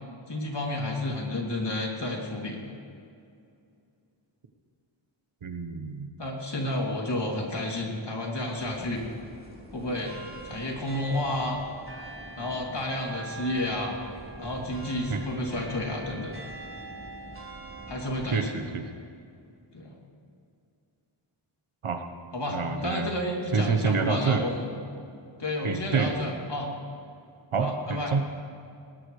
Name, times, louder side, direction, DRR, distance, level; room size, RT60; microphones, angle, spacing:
voice 1, 0.3-2.7 6.2-9.0 9.7-10.1 10.5-11.6 12.4-14.0 14.4-16.3 17.9-18.6 19.7-19.9 22.3-24.7 25.4-26.7 27.6-28.1, left 1 dB, 55° left, -1 dB, 3.1 m, -31 dB
voice 2, 5.4-6.1 15.1-15.2 18.2-18.8 21.8-22.0 22.5-23.1 23.5-24.4 25.6-26.1 27.5-28.2, right 5 dB, 75° right, 6 dB, 1.2 m, -27 dB
sound 1, 8.6-18.3, right 2 dB, 25° right, 3.9 m, -42 dB
20.0 x 18.5 x 3.3 m, 2.5 s
wide cardioid pair, 55°, 49 cm